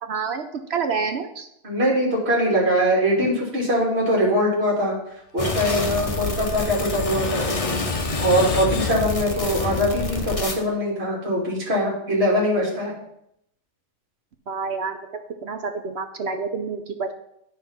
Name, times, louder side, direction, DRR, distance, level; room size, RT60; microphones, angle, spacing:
voice 1, 0.0-1.5 14.5-15.0 15.4-17.1, right 5 dB, 55° right, 6 dB, 0.7 m, -28 dB
voice 2, 1.6-4.9 5.3-12.9, equal, 40° right, -4 dB, 2.9 m, -22 dB
Screech, 5.4-9.7, left 6 dB, 60° left, 1.2 m, -36 dB
sound 1, 5.4-10.5, left 3 dB, 25° left, 0.8 m, -27 dB
9.7 x 4.3 x 5.6 m, 0.77 s
omnidirectional pair, 1.7 m